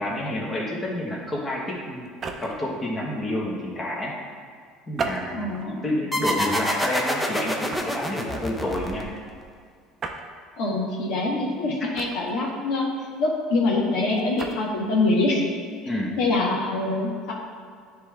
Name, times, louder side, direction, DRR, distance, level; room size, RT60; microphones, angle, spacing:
voice 1, 0.0-2.1 2.4-4.1 4.9-5.4 5.8-9.1 15.8-16.1, left 1 dB, 20° left, -4 dB, 1.4 m, -29 dB
sound 1, 2.0-2.7 4.9-5.7 6.3-6.5 7.7-8.1 10.0-10.2 11.9-12.5 14.2-14.6, right 4 dB, 40° right, 0.6 m, -34 dB
voice 2, 5.3-5.8 10.6-12.9 13.2-15.4 16.2-17.3, left 2 dB, 70° left, -3 dB, 1.4 m, -24 dB
sound 2, 6.1-9.4, equal, 5° left, 0.8 m, -27 dB
9.6 x 3.4 x 3.5 m, 2.1 s
supercardioid pair, 110°, 0 cm